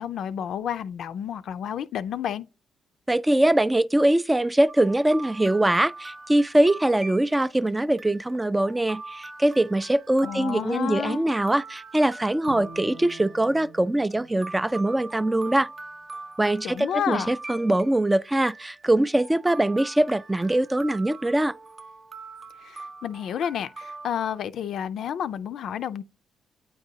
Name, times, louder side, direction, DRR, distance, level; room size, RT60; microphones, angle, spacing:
voice 1, 0.0-2.5 10.2-11.3 16.6-17.3 22.6-26.0, left 9 dB, 70° left, 0.4 m, -30 dB
voice 2, 3.1-15.7 16.4-21.5, right 1 dB, 15° right, 0.3 m, -22 dB
sound 1, 4.7-24.4, right 3 dB, 45° right, 0.7 m, -43 dB
Bowed string instrument, 12.5-15.7, right 3 dB, 80° right, 0.5 m, -47 dB
8.8 x 3.9 x 2.7 m
supercardioid pair, 55°, 0 cm